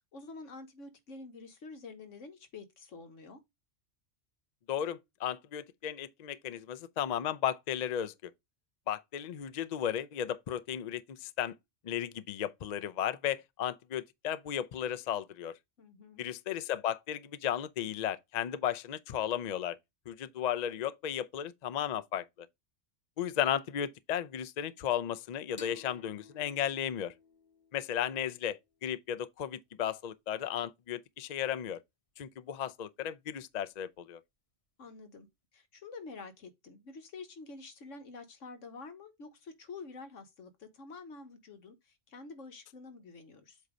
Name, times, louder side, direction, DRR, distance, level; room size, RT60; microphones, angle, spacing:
voice 1, 0.1-3.4 15.8-16.2 34.8-35.3 35.5-43.6, left 4 dB, 90° left, 1.5 m, -48 dB
voice 2, 4.7-8.3 8.9-11.6 11.8-15.6 16.2-19.8 20.1-22.5 23.2-27.1 27.7-31.8 32.2-34.2, left 10 dB, 50° left, 0.5 m, -35 dB
sound 1, 25.6-28.9, left 3 dB, 30° left, 1.0 m, -55 dB
7.9 x 2.8 x 5.0 m
omnidirectional pair, 1.2 m